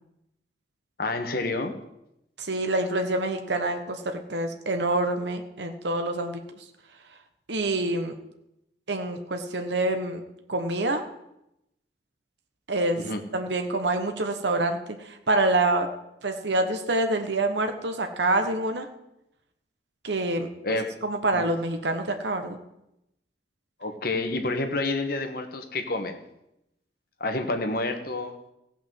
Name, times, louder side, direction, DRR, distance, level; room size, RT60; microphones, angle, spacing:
voice 1, 1.0-1.7 13.0-13.2 20.6-20.9 21.3-21.4 23.8-26.2 27.2-28.4, left 2 dB, 55° left, 6 dB, 1.5 m, -29 dB
voice 2, 2.4-6.4 7.5-8.1 8.9-10.2 10.5-11.0 12.7-13.0 13.3-15.9 16.2-18.9 20.0-20.5 21.0-22.6, right 2 dB, 75° right, 6 dB, 1.2 m, -26 dB
16.0 x 6.0 x 7.7 m, 0.84 s
head